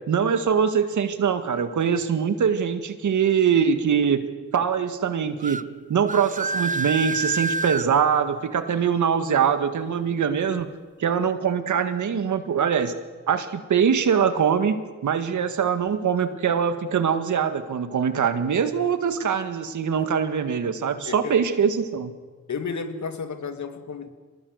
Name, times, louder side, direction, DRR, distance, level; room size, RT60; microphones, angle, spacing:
voice 1, 0.1-4.2 4.5-5.6 5.9-10.7 11.0-12.9 13.3-14.8 15.0-22.1, right 7 dB, 85° right, 9 dB, 1.9 m, -23 dB
sound 1, 5.4-5.6 6.1-7.9, right 3 dB, 25° right, 0.7 m, -27 dB
voice 2, 21.0-21.4 22.5-24.1, left 5 dB, 70° left, 8 dB, 2.5 m, -32 dB
25.0 x 20.0 x 8.0 m, 1.3 s
cardioid pair, 60°, 29 cm